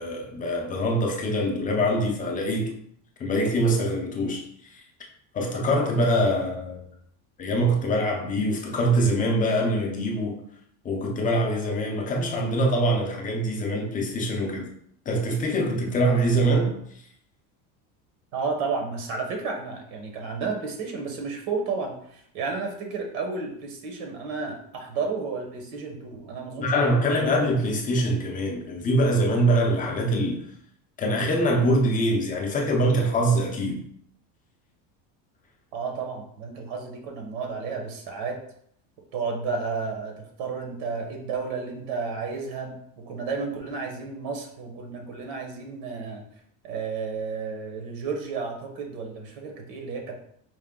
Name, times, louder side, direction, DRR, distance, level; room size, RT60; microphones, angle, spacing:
voice 1, 0.0-2.7 3.2-4.4 4.7-4.8 5.3-6.8 7.4-10.4 10.8-14.7 15.1-16.8 26.6-30.4 31.0-33.8, right 1 dB, 20° left, 0.4 m, -24 dB
voice 2, 18.3-27.1 35.7-38.4 39.1-40.1 40.4-42.8 43.1-46.2 46.6-50.3, right 4 dB, 75° right, 1.1 m, -32 dB
4.6 x 2.1 x 3.6 m
cardioid pair, 160°, 42 cm